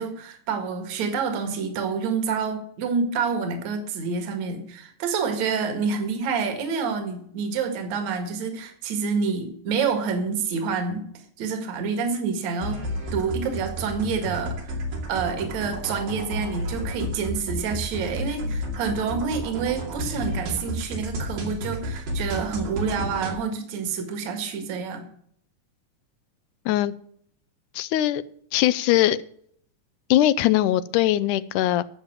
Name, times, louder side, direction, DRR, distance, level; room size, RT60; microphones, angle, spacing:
voice 1, 0.0-11.1 11.4-12.8 13.1-14.8 15.1-25.1, right 5 dB, 60° right, 5 dB, 2.9 m, -28 dB
sound 1, 12.6-23.3, equal, 85° right, 4.2 m, -31 dB
voice 2, 27.8-28.2 28.5-29.2 30.1-31.8, left 13 dB, 80° left, 16 dB, 2.0 m, -21 dB
12.0 x 7.2 x 7.5 m, 0.64 s
omnidirectional pair, 3.8 m